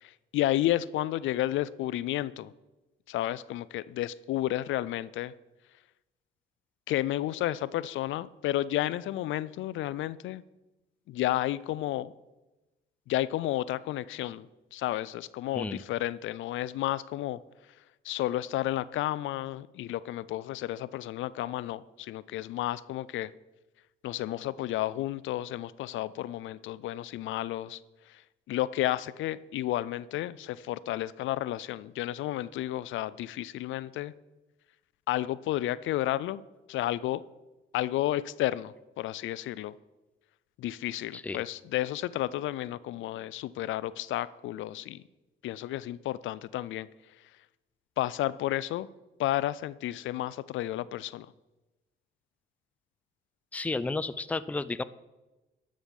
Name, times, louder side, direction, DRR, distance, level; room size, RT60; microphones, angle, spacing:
voice 1, 0.0-2.5 3.1-5.3 6.9-10.4 11.1-12.1 13.1-14.5 14.7-17.4 18.0-23.3 24.0-27.8 28.1-28.2 28.5-34.1 35.1-36.4 36.7-37.2 37.7-39.7 40.6-45.0 45.4-46.9 48.0-48.9 49.2-51.3, left 14 dB, 75° left, 18 dB, 0.4 m, -32 dB
voice 2, 53.5-54.8, left 3 dB, 5° left, 15 dB, 0.4 m, -32 dB
11.5 x 6.4 x 5.3 m, 1.1 s
cardioid pair, 90°, 20 cm